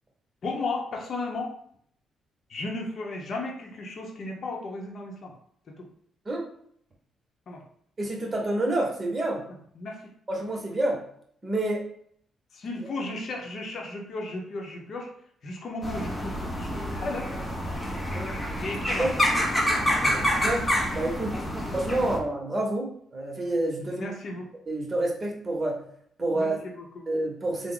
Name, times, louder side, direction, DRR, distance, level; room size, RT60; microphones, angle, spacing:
voice 1, 0.4-1.5 2.5-5.3 5.8-5.9 7.5-7.6 9.5-10.0 12.5-15.1 15.4-17.3 18.6-19.1 19.6-20.3 23.8-24.5 26.3-27.0, left 2 dB, 55° left, 0 dB, 0.8 m, -35 dB
voice 2, 8.0-9.5 10.3-11.0 11.4-11.9 18.1-18.4 19.0-19.1 20.4-21.4 21.7-24.1 24.7-25.8 26.2-26.6 27.1-27.7, right 1 dB, 30° right, -1 dB, 1.0 m, -28 dB
sound 1, 15.8-22.2, equal, 15° left, 0.7 m, -27 dB
3.4 x 2.1 x 3.8 m, 0.65 s
cardioid pair, 90°, 0 cm